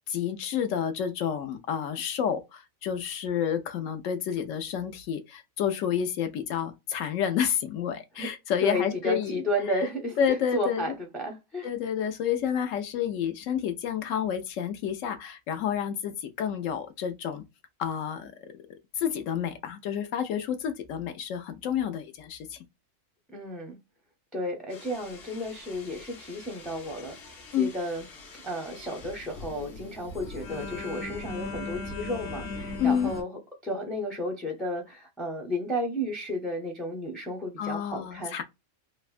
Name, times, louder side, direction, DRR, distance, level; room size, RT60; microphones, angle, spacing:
voice 1, 0.1-9.4 9.7-9.8 10.2-11.0 11.6-17.4 17.8-18.3 19.0-22.6 27.5-27.7 32.8-33.1 37.6-38.4, left 8 dB, 80° left, 1.0 m, -29 dB
voice 2, 8.6-10.2 10.5-11.7 23.3-23.8 24.3-27.2 27.5-28.1 28.4-33.3 33.6-38.4, equal, ahead, 0.3 m, -32 dB
sound 1, 24.7-33.2, left 3 dB, 55° left, 0.9 m, -40 dB
3.4 x 2.1 x 2.4 m
omnidirectional pair, 1.3 m